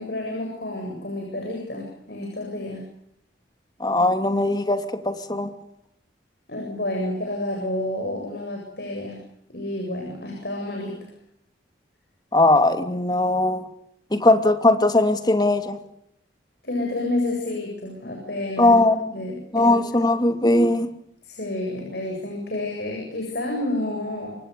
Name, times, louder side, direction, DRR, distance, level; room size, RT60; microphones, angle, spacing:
voice 1, 0.0-2.9 6.5-11.1 16.6-18.8 19.1-20.0 21.2-24.4, left 1 dB, 60° left, 1 dB, 7.9 m, -30 dB
voice 2, 3.8-5.5 12.3-13.6 14.1-15.8 18.6-19.0 19.5-20.9, left 2 dB, 20° left, 7 dB, 2.8 m, -19 dB
28.0 x 24.5 x 6.9 m, 0.75 s
head